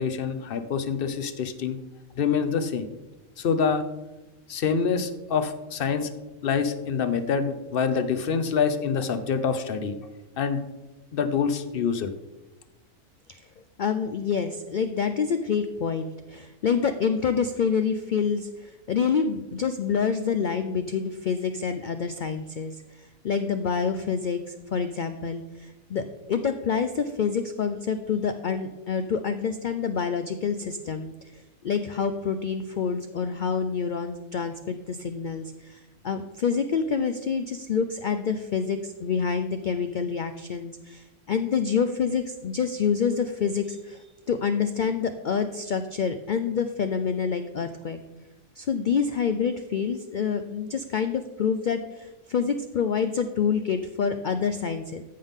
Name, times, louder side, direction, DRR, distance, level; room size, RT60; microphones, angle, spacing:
voice 1, 0.0-1.8 2.2-2.9 3.4-3.8 4.5-6.1 6.4-10.0 10.4-10.6 11.1-12.1, left 6 dB, 50° left, 10 dB, 0.8 m, -26 dB
voice 2, 13.8-48.0 48.6-55.0, left 6 dB, 75° left, 9 dB, 0.4 m, -27 dB
14.0 x 5.6 x 3.6 m, 1.1 s
omnidirectional pair, 1.4 m